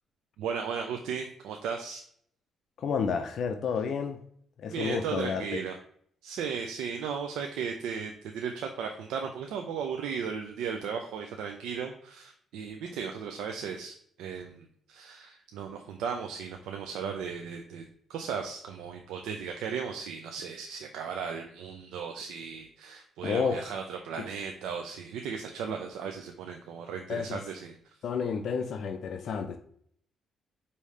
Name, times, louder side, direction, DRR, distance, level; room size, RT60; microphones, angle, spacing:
voice 1, 0.4-2.0 4.7-5.8 6.2-17.8 18.1-27.8, right 6 dB, 90° right, 4 dB, 0.4 m, -36 dB
voice 2, 2.8-4.2 4.6-5.6 23.2-23.7 27.1-27.4 28.0-29.6, left 6 dB, 65° left, 6 dB, 0.4 m, -30 dB
4.9 x 2.7 x 3.1 m, 0.63 s
cardioid pair, 90°, 0 cm